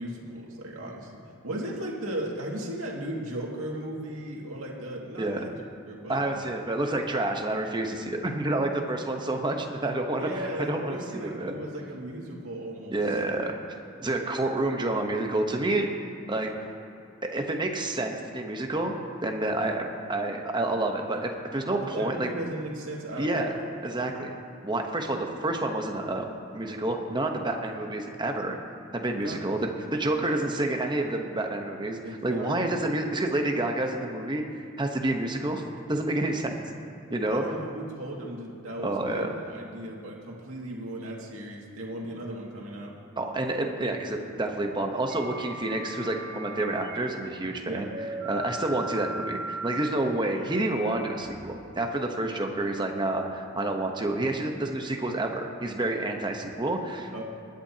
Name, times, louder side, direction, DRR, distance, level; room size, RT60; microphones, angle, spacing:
voice 1, 0.0-5.6 5.9-6.5 10.2-13.5 21.8-23.6 24.0-24.2 29.2-29.4 30.1-30.4 32.0-32.6 37.3-42.9 47.6-47.9 57.1-57.2, right 1 dB, 85° right, -2 dB, 2.2 m, -36 dB
voice 2, 6.1-10.3 10.7-11.6 12.9-15.9 16.3-16.5 17.2-19.0 19.2-22.3 23.2-23.5 23.8-24.3 24.6-28.6 28.9-35.6 35.9-36.5 37.1-37.4 38.8-39.3 43.2-47.9 48.2-57.2, right 2 dB, 20° right, 3 dB, 1.0 m, -29 dB
sound 1, 45.1-47.0 47.9-51.9, right 2 dB, 50° right, 2.8 m, -38 dB
20.0 x 10.5 x 2.8 m, 2.7 s
head